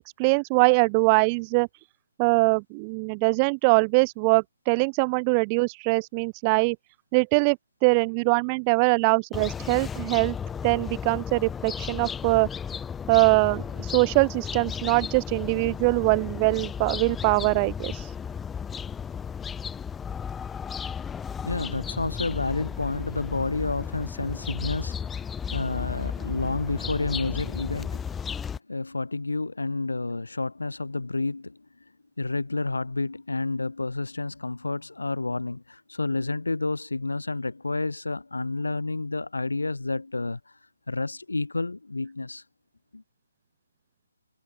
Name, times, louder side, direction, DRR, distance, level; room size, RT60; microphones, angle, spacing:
voice 1, 0.0-1.7 2.2-6.8 7.1-10.4 10.6-12.5 13.1-18.1, right 33 dB, 25° right, 0.5 m, -23 dB
sound 1, 9.3-28.6, left 7 dB, 10° left, 1.2 m, -34 dB
voice 2, 21.4-28.2 28.7-31.6 32.2-40.4 40.9-42.4 42.9-43.0, left 3 dB, 80° left, 1.5 m, -30 dB
figure-of-eight pair, 145°, 0 cm